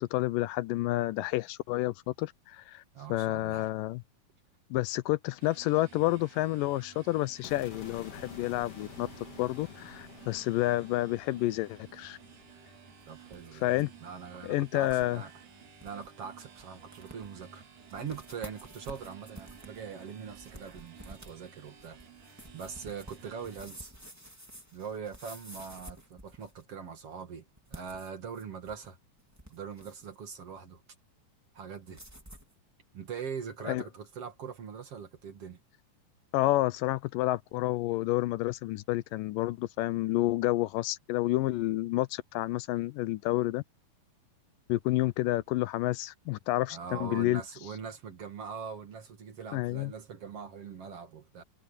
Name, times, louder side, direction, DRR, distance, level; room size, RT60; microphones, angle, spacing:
voice 1, 0.0-2.8 3.1-4.0 4.7-9.1 9.4-12.2 13.5-13.9 14.4-15.2 33.6-33.8 36.3-43.6 44.7-47.4 49.5-49.9, left 17 dB, 80° left, 2.3 m, -29 dB
voice 2, 2.9-3.7 13.1-13.6 14.0-15.3 15.8-17.6 17.9-22.0 22.5-23.9 24.7-27.4 27.7-29.0 29.5-30.8 31.5-32.0 32.9-35.6 46.7-51.4, right 6 dB, 45° right, 2.8 m, -42 dB
sound 1, 5.4-23.6, right 7 dB, 65° right, 4.5 m, -54 dB
sound 2, 7.4-13.7, left 7 dB, 50° left, 2.5 m, -50 dB
sound 3, 13.0-13.9 14.2-14.3 14.9-15.1 15.5-15.6 15.8-16.1 16.6-16.7 16.9-17.4 17.9-26.7 27.6-28.9 29.2-30.2 31.9-32.5, right 1 dB, 5° right, 3.3 m, -50 dB
omnidirectional pair, 3.9 m